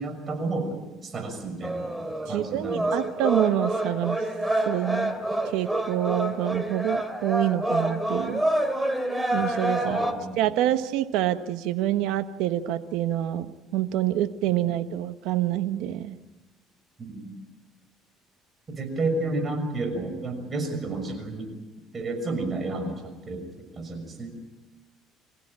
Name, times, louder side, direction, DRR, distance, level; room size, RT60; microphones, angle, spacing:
voice 1, 0.0-1.9 2.3-2.9 9.8-10.4 17.0-17.4 18.7-21.5 21.9-23.4 23.7-24.3, right 2 dB, 35° right, 6 dB, 6.3 m, -31 dB
sound 1, 1.6-10.1, right 1 dB, 5° right, 2.7 m, -27 dB
voice 2, 2.3-4.2 4.6-5.1 5.5-8.4 9.3-10.0 10.4-13.5 13.7-16.2, right 13 dB, 80° right, 10 dB, 1.2 m, -26 dB
26.5 x 15.5 x 8.8 m, 1.1 s
cardioid pair, 100°, 0 cm